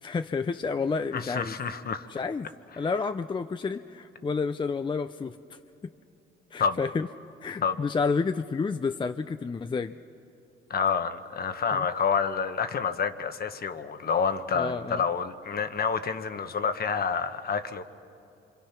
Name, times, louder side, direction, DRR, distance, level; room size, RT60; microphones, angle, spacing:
voice 1, 0.0-1.6 2.1-5.6 6.5-7.1 7.4-9.9 11.7-11.9 14.5-15.0, left 4 dB, 25° left, 10 dB, 0.5 m, -30 dB
voice 2, 1.1-2.1 6.6-6.8 7.6-7.8 10.7-17.8, left 6 dB, 50° left, 9 dB, 1.2 m, -28 dB
26.0 x 26.0 x 5.9 m, 2.6 s
cardioid pair, 90°, 20 cm